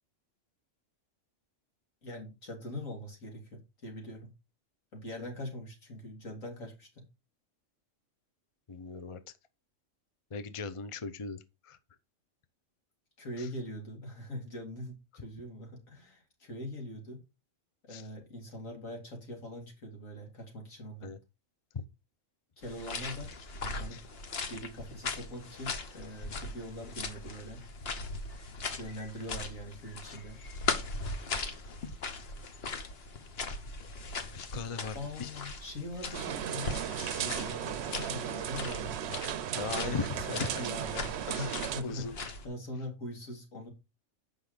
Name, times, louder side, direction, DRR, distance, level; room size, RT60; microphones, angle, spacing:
voice 1, 2.0-4.3 4.9-6.9 13.2-17.2 17.8-21.1 22.6-23.3 23.6-24.0 24.5-27.6 28.8-30.4 34.9-36.8 37.2-39.0 39.7-40.0 40.3-43.7, left 1 dB, 80° left, 3.1 m, -42 dB
voice 2, 8.7-9.2 10.3-11.8 13.4-13.5 17.9-18.0 21.0-21.2 21.7-21.8 23.9-24.0 34.2-35.3 39.5-40.6 41.3-41.5 41.8-42.2, left 5 dB, 30° left, 0.7 m, -38 dB
sound 1, 22.6-42.5, left 3 dB, 50° left, 1.3 m, -39 dB
sound 2, 36.1-41.8, right 9 dB, 60° right, 0.8 m, -36 dB
8.2 x 5.5 x 5.1 m
omnidirectional pair, 1.4 m